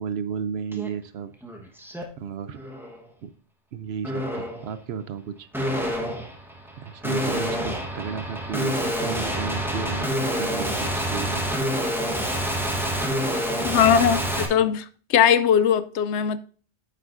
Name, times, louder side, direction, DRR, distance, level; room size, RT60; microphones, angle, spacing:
voice 1, 0.0-1.3 2.2-2.6 3.2-3.3 3.7-5.5 6.8-11.4, right 6 dB, 70° right, 0.8 m, -33 dB
sound 1, 0.7-0.9 1.3-2.0 2.5-3.0 4.0-4.7 5.5-14.5, equal, ahead, 1.0 m, -27 dB
sound 2, 8.7-9.8 10.4-11.6 12.1-13.2 13.7-14.4, left 2 dB, 60° left, 3.6 m, -49 dB
voice 2, 13.6-16.4, left 8 dB, 75° left, 0.9 m, -20 dB
9.6 x 7.5 x 2.6 m
omnidirectional pair, 1.2 m